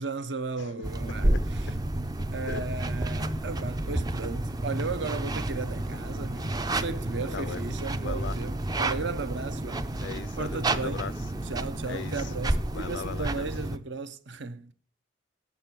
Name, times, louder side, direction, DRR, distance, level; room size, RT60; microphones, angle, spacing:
voice 1, 0.0-1.8 2.3-10.0 10.4-11.1 11.4-14.7, right 4 dB, 60° right, 0.7 m, -35 dB
sound 1, 0.8-13.8, right 2 dB, 20° right, 0.4 m, -31 dB
sound 2, 1.2-8.5 8.9-9.0, equal, 45° right, 1.1 m, -34 dB
voice 2, 8.0-8.3 10.0-11.1 11.9-12.1 12.7-13.5, left 6 dB, 60° left, 0.3 m, -38 dB
8.5 x 6.8 x 5.9 m
head